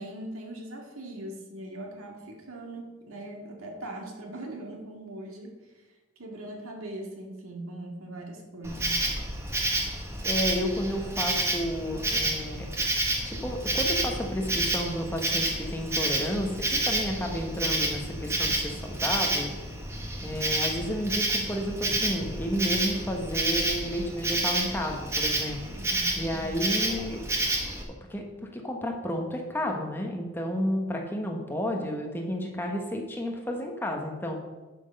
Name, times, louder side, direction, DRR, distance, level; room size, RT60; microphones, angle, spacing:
voice 1, 0.0-5.9 6.2-9.1 25.8-26.8 31.2-31.6, right 1 dB, 85° right, 2 dB, 1.9 m, -41 dB
Insect, 8.6-27.8, right 2 dB, 15° right, 1.2 m, -29 dB
voice 2, 10.2-12.7 13.2-19.5 20.2-25.6 26.2-27.2 28.1-28.2 28.5-34.4, equal, 10° left, 1 dB, 1.1 m, -31 dB
11.0 x 6.1 x 5.3 m, 1.2 s
head